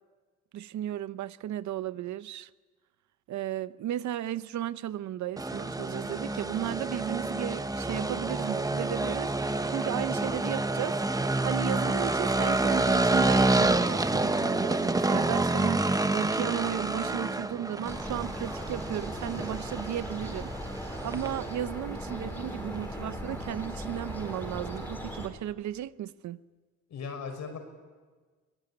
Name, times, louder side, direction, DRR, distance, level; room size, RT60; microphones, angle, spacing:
voice 1, 0.5-2.5 3.3-20.5 20.8-26.4, right 12 dB, 70° right, 0.8 m, -35 dB
sound 1, 5.4-25.2, right 2 dB, 10° right, 1.0 m, -29 dB
sound 2, 17.8-25.3, equal, 5° left, 4.9 m, -39 dB
voice 2, 26.9-27.6, left 5 dB, 65° left, 5.8 m, -39 dB
24.0 x 18.5 x 9.9 m
cardioid pair, 90°, 30 cm